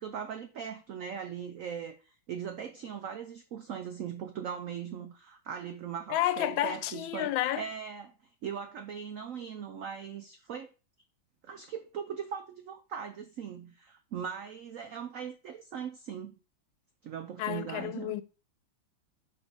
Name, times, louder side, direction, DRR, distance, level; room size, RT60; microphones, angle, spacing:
voice 1, 0.0-8.1 8.4-10.7 11.4-16.4 17.0-18.1, right 8 dB, 90° right, 0.7 m, -40 dB
voice 2, 6.1-7.6 17.4-18.2, left 13 dB, 80° left, 1.3 m, -30 dB
5.1 x 4.6 x 5.3 m
omnidirectional pair, 2.1 m